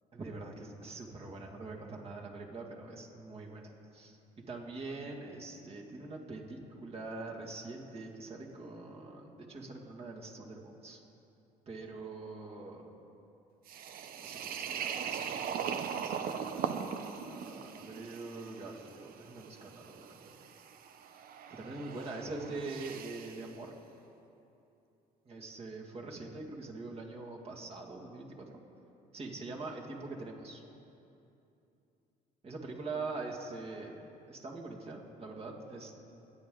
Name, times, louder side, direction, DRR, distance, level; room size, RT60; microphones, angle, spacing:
voice 1, 0.1-4.2 4.5-11.0 11.7-12.8 14.1-16.6 17.2-20.3 21.6-23.7 25.3-28.3 29.1-30.6 32.4-36.0, right 3 dB, 35° right, -1 dB, 2.2 m, -44 dB
sound 1, 13.7-23.5, right 7 dB, 60° right, 0.8 m, -40 dB
24.5 x 9.6 x 3.9 m, 2.8 s
cardioid pair, 110°, 17 cm